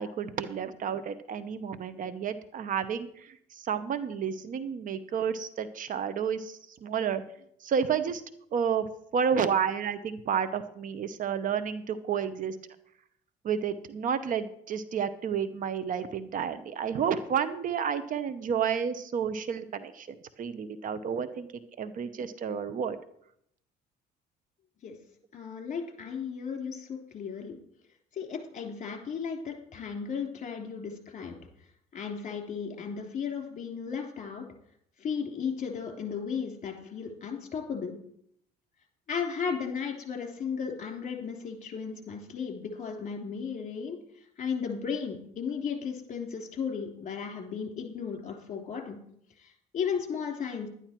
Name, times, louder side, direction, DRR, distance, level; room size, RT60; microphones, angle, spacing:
voice 1, 0.0-7.2 7.6-8.2 8.5-8.9 9.1-12.5 13.4-21.5 21.8-23.0, right 7 dB, 50° right, 13 dB, 0.9 m, -31 dB
voice 2, 25.3-27.6 28.1-31.3 31.9-34.4 35.0-37.9 39.1-49.0 49.4-50.7, left 6 dB, 45° left, 3 dB, 3.2 m, -35 dB
11.5 x 11.0 x 4.5 m, 0.70 s
cardioid pair, 110°, 17 cm